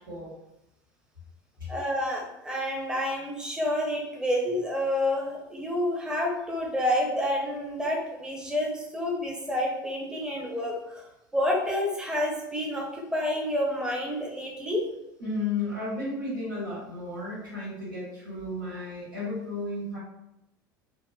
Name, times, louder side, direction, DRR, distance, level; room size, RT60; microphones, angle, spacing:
voice 1, 1.7-11.0 11.3-14.8, left 1 dB, 5° right, -2 dB, 0.7 m, -29 dB
voice 2, 15.2-20.0, left 2 dB, 90° right, -8 dB, 1.4 m, -33 dB
2.9 x 2.1 x 2.2 m, 0.86 s
hypercardioid pair, 75°, 11 cm